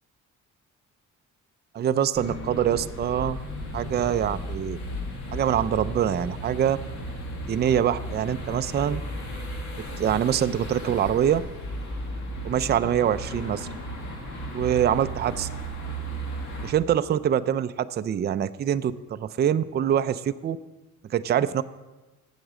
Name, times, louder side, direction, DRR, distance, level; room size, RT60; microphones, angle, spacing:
voice 1, 1.7-3.4 3.7-4.8 5.3-6.8 7.5-9.0 10.0-11.4 12.4-13.7 14.5-15.5 16.6-20.6 21.1-21.6, right 9 dB, 35° right, 12 dB, 0.4 m, -24 dB
sound 1, 2.1-16.7, equal, 65° left, 1.8 m, -35 dB
7.9 x 7.2 x 7.5 m, 1.2 s
cardioid pair, 90°, 30 cm